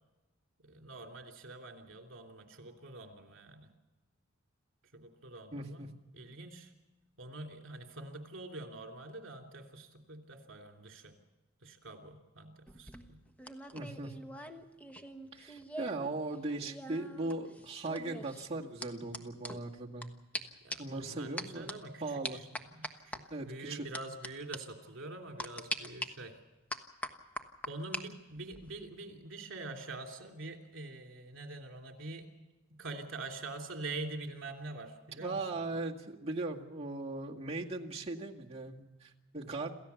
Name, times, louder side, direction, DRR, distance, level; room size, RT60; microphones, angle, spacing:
voice 1, 0.6-3.7 4.9-5.9 6.1-6.7 7.2-11.1 11.6-13.2 20.6-26.4 27.7-32.3 32.7-35.7, right 2 dB, 65° right, 2 dB, 3.1 m, -45 dB
voice 2, 5.5-5.9 13.7-14.1 15.3-20.2 20.8-21.7 22.0-22.4 23.3-23.9 35.2-39.7, right 2 dB, 30° right, -2 dB, 2.0 m, -39 dB
sound 1, 12.7-16.1 16.3-20.1 20.3-20.4 20.7-21.0 21.4-21.7 22.2-23.2 23.9-24.3 24.5-24.6 25.4-26.1 26.7-28.0 28.4-28.7, equal, 5° left, 1.2 m, -42 dB
27.5 x 15.0 x 7.1 m, 1.1 s
head